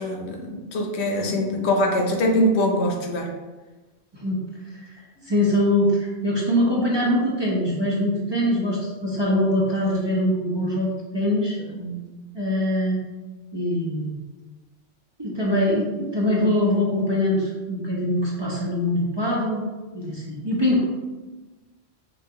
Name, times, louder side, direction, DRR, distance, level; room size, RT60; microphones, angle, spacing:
voice 1, 0.0-3.3 11.6-12.1, left 1 dB, 80° left, 2 dB, 0.9 m, -23 dB
voice 2, 5.2-11.6 12.3-13.0 13.5-14.1 15.2-19.6 19.9-20.8, left 1 dB, 30° right, -5 dB, 0.6 m, -23 dB
5.7 x 2.4 x 2.8 m, 1.2 s
omnidirectional pair, 1.1 m